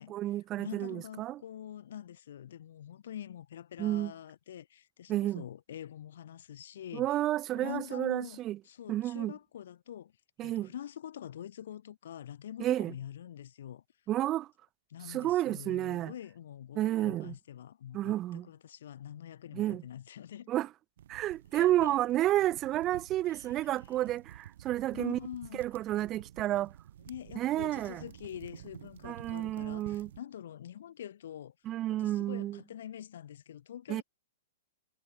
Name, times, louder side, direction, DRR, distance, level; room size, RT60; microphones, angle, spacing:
voice 1, 0.0-1.4 3.8-4.1 5.1-5.4 6.9-8.6 8.9-9.3 10.4-10.7 12.6-12.9 14.1-14.5 15.1-16.1 16.8-17.3 17.9-18.5 19.5-19.8 20.5-20.7 21.1-25.2 25.6-26.7 27.4-28.0 29.0-30.1 31.7-32.6 33.9-34.0, right 14 dB, 20° right, 0.8 m, -31 dB
voice 2, 0.6-7.1 7.5-8.4 8.6-10.1 10.4-13.8 14.9-20.5 21.5-22.0 23.2-24.0 24.9-25.6 27.1-31.5 31.9-34.0, left 10 dB, 60° left, 6.6 m, -45 dB
sound 1, 21.0-30.2, right 11 dB, 55° right, 1.6 m, -51 dB
hypercardioid pair, 180°, 0 cm